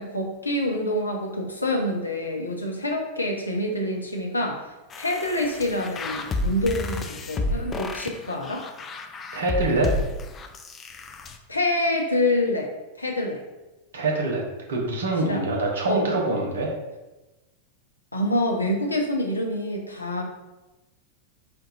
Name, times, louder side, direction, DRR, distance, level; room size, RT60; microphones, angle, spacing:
voice 1, 0.0-4.6 5.0-8.7 11.5-12.7 13.0-13.4 15.2-15.5 15.9-16.0 18.1-20.2, left 1 dB, 80° left, 1 dB, 0.7 m, -26 dB
sound 1, 4.9-11.4, left 2 dB, 25° left, 0.4 m, -31 dB
voice 2, 9.3-9.9 13.9-14.4 14.7-16.7, right 2 dB, 65° right, -1 dB, 1.0 m, -25 dB
4.3 x 2.6 x 4.0 m, 1.1 s
figure-of-eight pair, 90°, 0 cm